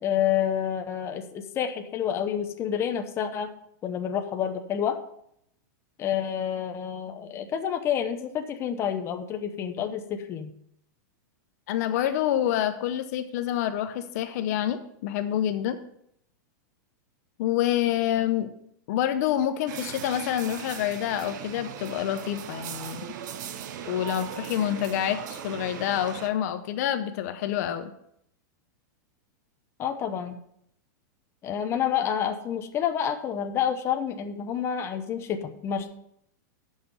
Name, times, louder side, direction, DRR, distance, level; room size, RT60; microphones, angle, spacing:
voice 1, 0.0-3.5 3.8-5.0 6.0-10.5 29.8-30.3 31.4-35.9, left 9 dB, 25° left, 6 dB, 0.8 m, -28 dB
voice 2, 11.7-15.8 17.4-18.5 18.9-23.0 23.9-27.9, left 11 dB, 55° left, 9 dB, 0.7 m, -27 dB
sound 1, 19.7-26.3, right 9 dB, 65° right, 0.8 m, -38 dB
9.2 x 6.4 x 5.4 m, 0.73 s
supercardioid pair, 150°, 10 cm